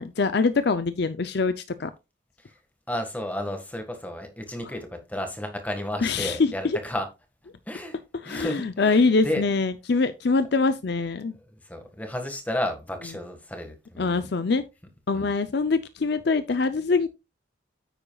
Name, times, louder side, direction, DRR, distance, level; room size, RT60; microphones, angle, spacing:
voice 1, 0.0-1.9 6.0-6.8 8.2-11.3 14.0-14.6 15.1-17.1, left 4 dB, 55° left, 0.5 m, -24 dB
voice 2, 2.9-7.1 7.7-8.0 8.2-9.4 11.5-14.2 15.1-15.3, left 1 dB, 10° left, 1.6 m, -32 dB
9.9 x 8.6 x 2.3 m
head